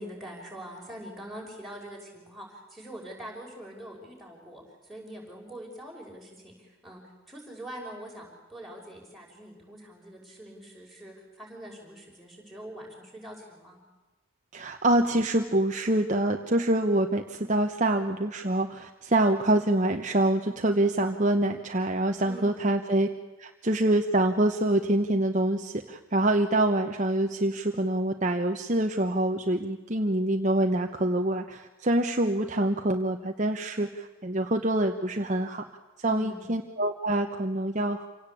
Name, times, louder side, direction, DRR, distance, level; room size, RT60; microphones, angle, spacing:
voice 1, 0.0-7.0 7.3-13.8 22.3-22.7 36.0-36.5, equal, ahead, -3 dB, 5.8 m, -43 dB
voice 2, 14.5-23.1 23.4-35.6 36.0-38.1, right 1 dB, 35° right, 4 dB, 1.0 m, -25 dB
27.0 x 17.5 x 8.6 m, 1.2 s
head